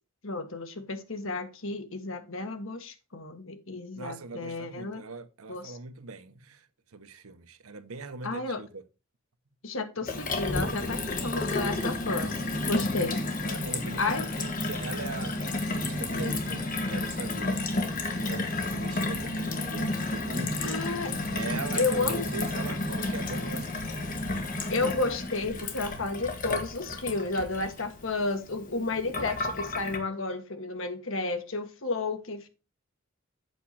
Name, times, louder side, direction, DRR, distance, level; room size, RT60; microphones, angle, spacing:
voice 1, 0.2-5.0 5.5-5.8 8.2-8.6 9.6-13.3 14.0-14.2 20.6-21.1 21.8-22.3 24.7-32.5, left 3 dB, 65° left, 1.5 m, -32 dB
voice 2, 3.9-6.7 6.9-8.8 13.0-17.6 18.1-20.8 21.3-23.8, right 4 dB, 80° right, 0.9 m, -41 dB
Gurgling / Water tap faucet / Sink (filling or washing), 10.1-30.0, left 2 dB, 40° left, 1.5 m, -31 dB
8.1 x 6.4 x 4.2 m
head